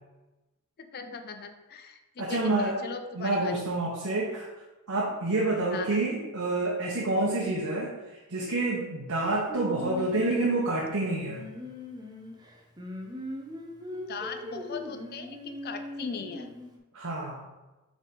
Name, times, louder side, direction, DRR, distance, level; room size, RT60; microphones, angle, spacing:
voice 1, 0.9-3.5 5.7-6.0 14.1-16.5, left 5 dB, 45° left, 6 dB, 0.5 m, -39 dB
voice 2, 2.2-2.8 3.1-4.5 4.9-8.0 8.3-11.4 16.9-17.4, right 2 dB, 80° right, -4 dB, 1.0 m, -28 dB
Singing, 9.5-16.8, left 1 dB, 20° right, 0.8 m, -40 dB
5.2 x 3.5 x 5.3 m, 1.1 s
head